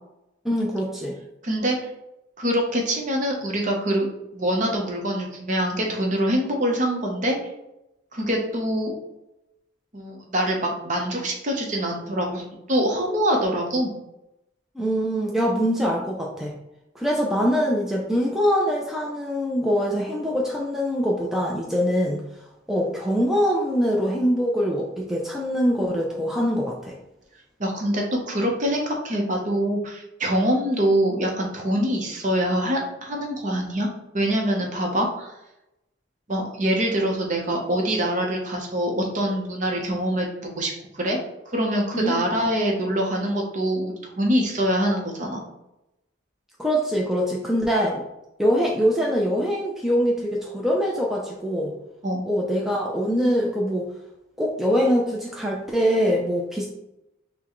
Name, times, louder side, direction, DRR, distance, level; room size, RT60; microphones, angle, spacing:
voice 1, 0.4-1.2 14.8-16.5 17.0-22.2 22.7-27.0 41.9-42.2 46.6-48.0 48.4-51.7 52.3-53.9 54.4-56.7, equal, ahead, -3 dB, 0.4 m, -23 dB
voice 2, 1.4-1.8 2.4-7.4 8.1-8.9 9.9-12.4 12.7-13.9 27.6-33.9 34.1-35.3 36.3-41.2 41.5-45.4 52.0-52.3, equal, 40° right, 1 dB, 0.8 m, -24 dB
5.9 x 2.2 x 3.0 m, 0.90 s
head